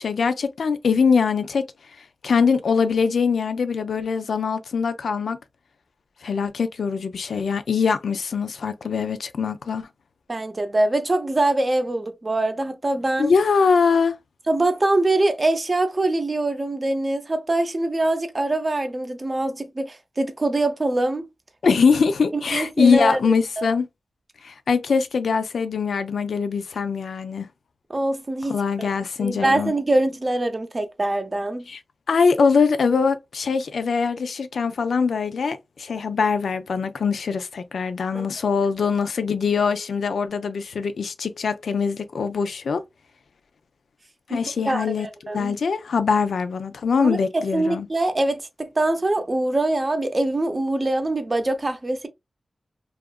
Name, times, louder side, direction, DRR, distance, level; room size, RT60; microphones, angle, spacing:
voice 1, 0.0-1.7 2.2-5.4 6.2-9.9 13.2-14.1 21.6-23.9 24.4-27.5 28.5-29.7 31.7-31.8 32.1-42.8 44.3-45.1 45.3-47.9, left 5 dB, 85° left, 0.4 m, -22 dB
voice 2, 10.3-13.3 14.5-21.2 21.7-21.8 22.5-23.7 27.9-28.9 29.2-31.7 38.1-38.3 44.3-44.4 44.6-45.5 47.0-52.1, right 2 dB, 30° right, 0.5 m, -23 dB
2.8 x 2.4 x 2.2 m
wide cardioid pair, 115°, 0 cm